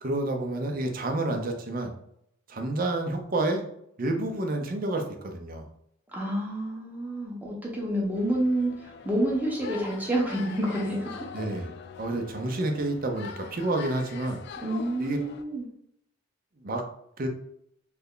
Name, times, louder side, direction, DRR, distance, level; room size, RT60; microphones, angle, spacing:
voice 1, 0.0-1.9 2.5-3.6 4.0-5.7 11.3-11.7 12.0-14.4 15.0-15.2 16.6-16.8 17.2-17.3, right 2 dB, 50° right, 4 dB, 0.6 m, -29 dB
voice 2, 6.1-11.2 14.6-15.7, right 1 dB, 10° right, -3 dB, 0.9 m, -28 dB
sound 1, 8.2-15.4, left 5 dB, 60° left, 0.3 m, -43 dB
3.3 x 2.1 x 3.8 m, 0.73 s
head